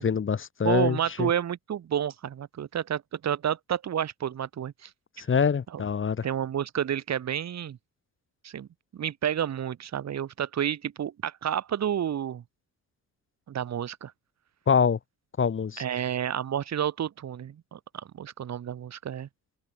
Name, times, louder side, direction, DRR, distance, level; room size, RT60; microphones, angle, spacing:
voice 1, 0.0-1.3 5.2-6.3 14.7-15.0 15.4-15.8, left 6 dB, 40° left, 3.3 m, -25 dB
voice 2, 0.6-4.9 5.7-5.8 6.2-7.8 8.4-8.7 8.9-12.4 13.5-14.1 15.8-17.8 18.1-19.3, right 9 dB, 60° right, 5.4 m, -30 dB
open air
cardioid pair, 90°, 30 cm